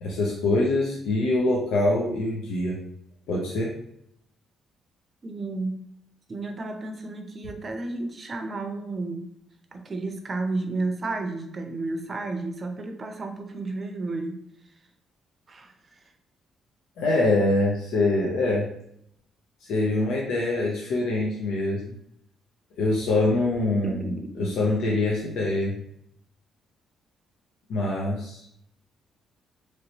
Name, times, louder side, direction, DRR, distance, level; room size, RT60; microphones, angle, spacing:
voice 1, 0.0-2.8 3.3-3.7 17.0-18.7 19.6-21.8 22.8-25.8 27.7-28.4, left 2 dB, 85° left, -3 dB, 0.6 m, -24 dB
voice 2, 5.2-5.8 6.3-9.3 9.7-14.4 15.5-16.0 23.8-24.6, right 2 dB, 35° right, 5 dB, 0.5 m, -32 dB
3.0 x 2.9 x 2.8 m, 0.73 s
cardioid pair, 90°, 0 cm